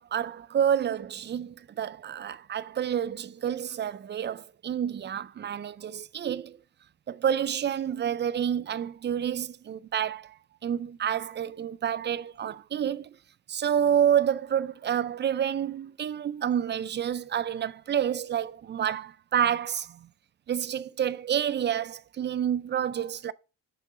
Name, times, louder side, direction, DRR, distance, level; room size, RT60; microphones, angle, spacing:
voice 1, 0.0-6.6 7.1-13.2 13.5-20.1 20.5-23.3, right 9 dB, 35° right, 0.4 m, -29 dB
6.2 x 5.4 x 4.8 m
cardioid pair, 90°, 30 cm